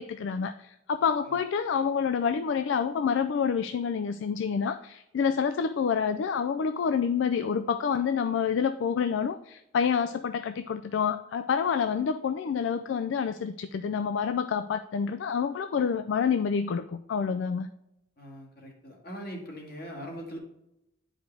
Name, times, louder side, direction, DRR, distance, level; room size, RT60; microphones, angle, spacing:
voice 1, 0.0-17.7, left 6 dB, 70° left, 10 dB, 0.3 m, -28 dB
voice 2, 18.2-20.4, equal, 50° left, 0 dB, 1.9 m, -41 dB
8.9 x 5.0 x 3.4 m, 0.85 s
head